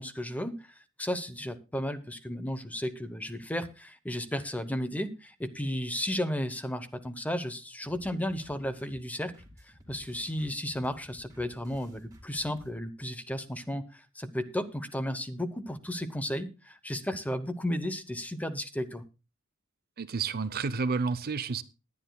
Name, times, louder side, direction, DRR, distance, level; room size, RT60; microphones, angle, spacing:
voice 1, 0.0-9.3 9.6-19.0, equal, 5° left, 11 dB, 0.8 m, -34 dB
sound 1, 7.8-12.7, equal, 15° right, 2.4 m, -55 dB
voice 2, 20.0-21.6, right 4 dB, 45° right, 15 dB, 0.6 m, -30 dB
19.5 x 10.0 x 2.3 m, 0.29 s
head